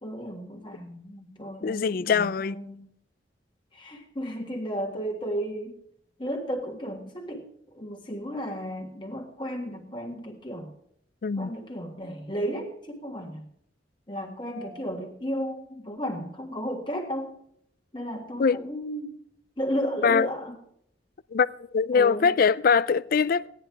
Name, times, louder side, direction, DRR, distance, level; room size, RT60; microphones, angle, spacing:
voice 1, 0.0-2.9 3.7-5.8 6.2-7.5 7.7-10.7 11.4-13.5 14.1-17.4 17.9-19.2 19.6-20.6 21.9-22.3, equal, 25° left, 1.6 m, -33 dB
voice 2, 1.6-2.6 11.2-11.5 18.4-18.6 20.0-20.3 21.3-23.5, left 6 dB, 50° left, 0.4 m, -22 dB
16.0 x 10.0 x 4.6 m
head